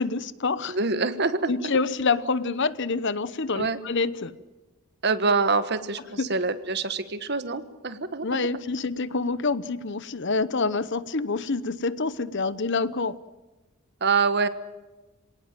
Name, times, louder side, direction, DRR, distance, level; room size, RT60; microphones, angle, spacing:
voice 1, 0.0-0.8 1.5-4.3 6.2-6.3 8.2-13.2, left 4 dB, 55° left, 16 dB, 0.9 m, -27 dB
voice 2, 0.7-1.5 3.5-3.8 5.0-8.5 14.0-14.5, right 4 dB, 50° right, 12 dB, 1.4 m, -25 dB
26.5 x 18.5 x 9.0 m, 1.2 s
head